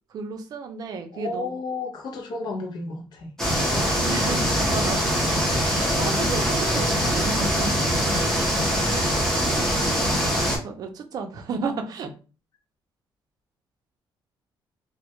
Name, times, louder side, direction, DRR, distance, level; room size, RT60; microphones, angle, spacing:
voice 1, 0.1-1.5 3.7-5.4 6.0-7.7 10.3-12.1, right 4 dB, 50° right, 5 dB, 0.4 m, -33 dB
voice 2, 1.1-3.3 8.8-9.4, left 3 dB, 55° left, 1 dB, 0.6 m, -33 dB
sound 1, 3.4-10.6, equal, 5° left, 0.6 m, -23 dB
2.1 x 2.1 x 2.8 m, 0.35 s
cardioid pair, 175°, 9 cm